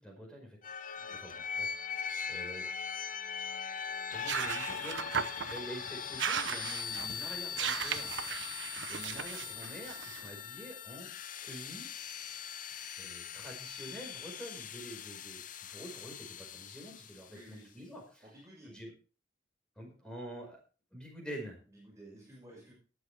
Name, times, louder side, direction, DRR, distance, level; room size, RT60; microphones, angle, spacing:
voice 1, 0.0-2.7 4.1-8.2 8.9-11.1 11.4-11.9 13.0-18.2 18.7-18.9 19.8-20.6 20.9-21.6, equal, 5° left, 0 dB, 5.3 m, -47 dB
sound 1, 0.6-17.4, left 7 dB, 45° left, 0.8 m, -41 dB
sound 2, 4.1-10.3, right 7 dB, 80° right, 0.9 m, -37 dB
voice 2, 17.3-17.8 18.2-18.8 21.7-22.7, right 1 dB, 20° right, -4 dB, 6.0 m, -54 dB
18.5 x 8.7 x 3.5 m, 0.36 s
head